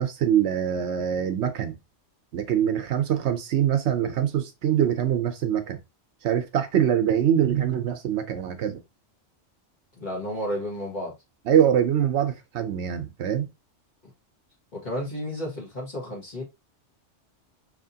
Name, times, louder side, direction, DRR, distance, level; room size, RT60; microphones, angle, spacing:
voice 1, 0.0-1.8 2.3-5.8 6.2-8.8 11.5-13.5, right 9 dB, 70° right, 0.9 m, -24 dB
voice 2, 10.0-11.1 14.7-16.4, equal, 40° left, 1.8 m, -32 dB
5.0 x 2.9 x 2.7 m
omnidirectional pair, 1.2 m